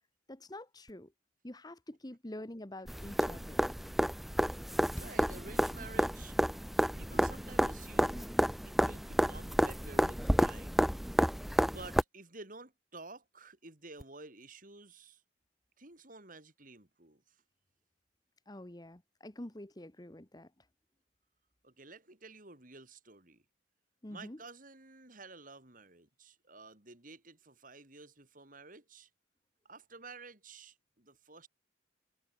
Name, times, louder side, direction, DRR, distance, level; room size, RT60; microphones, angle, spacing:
voice 1, 0.3-1.1 1.4-3.6 18.5-20.5 24.0-24.4, left 1 dB, 20° left, 1.2 m, -46 dB
sound 1, 2.9-12.0 14.0-14.1, equal, ahead, 0.3 m, -30 dB
voice 2, 5.0-6.4 6.9-8.3 8.6-10.9 11.7-15.2 15.8-17.4 21.6-23.4 24.1-29.1 29.6-31.5, right 3 dB, 45° right, 3.8 m, -52 dB
head